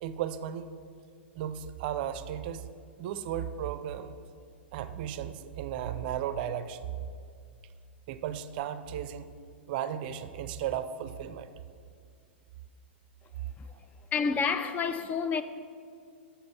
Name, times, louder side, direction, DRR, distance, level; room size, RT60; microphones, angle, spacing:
voice 1, 0.0-0.7 1.3-2.6 3.0-4.2 4.7-7.0 8.1-9.3 9.7-11.5 13.7-13.8, right 10 dB, 50° right, 0.5 m, -35 dB
voice 2, 14.1-15.4, left 5 dB, 20° left, 0.4 m, -29 dB
7.3 x 6.7 x 6.0 m
hypercardioid pair, 105°, 6 cm